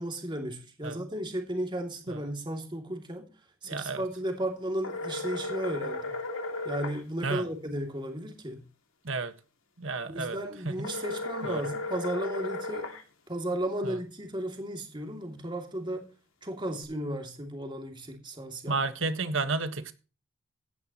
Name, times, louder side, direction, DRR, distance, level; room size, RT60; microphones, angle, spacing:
voice 1, 0.0-3.3 3.6-6.1 6.6-8.7 10.1-12.9 13.3-16.1 16.4-18.8, right 1 dB, 20° right, 2.7 m, -34 dB
voice 2, 3.7-4.0 7.2-7.4 9.0-9.3 9.8-10.4 10.6-10.7 11.4-11.6 18.7-19.9, right 3 dB, 70° right, 1.5 m, -31 dB
sound 1, 4.8-7.0 10.8-13.0, left 2 dB, 80° left, 2.5 m, -35 dB
16.0 x 10.5 x 3.1 m
head